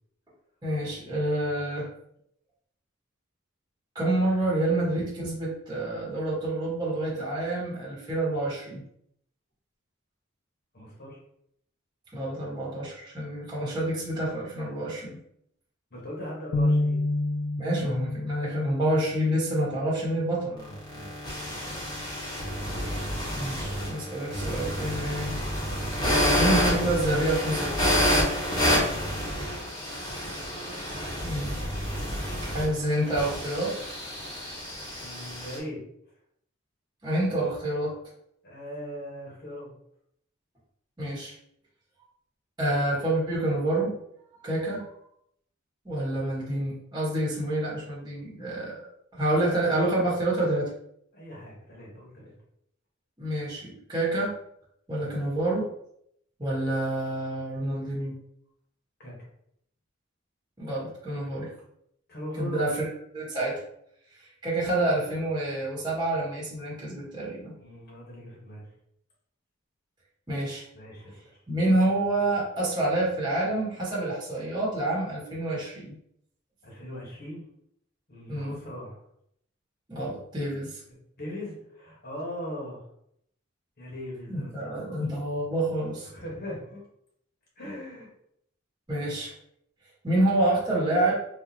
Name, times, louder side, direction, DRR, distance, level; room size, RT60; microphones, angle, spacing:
voice 1, 0.6-1.9 3.9-8.8 12.1-15.2 17.6-20.5 23.3-25.3 26.0-27.9 31.2-31.5 32.4-33.7 37.0-37.9 41.0-41.3 42.6-43.9 44.4-44.9 45.8-48.8 49.1-50.7 53.2-54.3 54.9-55.6 56.4-58.1 60.6-61.5 62.4-62.7 63.1-63.6 64.4-67.5 70.3-70.6 71.5-75.9 78.3-78.5 79.9-80.8 84.3-86.1 88.9-89.3 90.0-91.1, right 1 dB, 20° right, -6 dB, 1.4 m, -28 dB
voice 2, 10.7-11.2 15.9-17.0 20.4-21.4 21.7-21.9 24.0-24.1 28.9-29.4 35.0-35.8 38.4-39.7 51.1-52.3 55.0-55.2 59.0-59.1 62.1-62.6 67.6-68.7 70.7-71.4 76.6-77.5 78.1-79.0 80.9-82.8 83.8-85.1 86.0-86.8 87.6-88.1, left 1 dB, 50° left, -4 dB, 1.4 m, -40 dB
sound 1, 16.5-22.8, left 2 dB, 70° left, 0.3 m, -31 dB
sound 2, 20.6-35.6, equal, 20° left, 1.2 m, -29 dB
4.0 x 2.9 x 2.9 m, 0.72 s
head